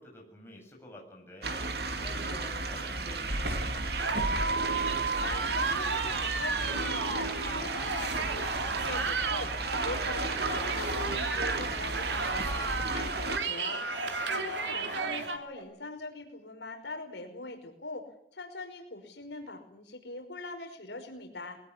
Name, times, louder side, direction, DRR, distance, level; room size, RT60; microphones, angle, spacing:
voice 1, 0.0-4.4 14.0-14.5 14.9-15.4, left 1 dB, 15° left, -1 dB, 7.8 m, -50 dB
sound 1, 1.4-13.4, right 2 dB, 60° right, 2.6 m, -34 dB
sound 2, 4.0-15.4, right 4 dB, 80° right, 2.9 m, -33 dB
voice 2, 5.2-9.5 9.8-13.8 14.3-18.0 18.3-21.6, left 2 dB, 75° left, 4 dB, 5.5 m, -41 dB
sound 3, 8.8-10.0 10.5-10.7 11.4-12.7 13.1-13.3 13.8-15.1 15.5-15.6, right 2 dB, 45° right, 6.4 m, -45 dB
21.5 x 18.5 x 9.9 m, 0.68 s
head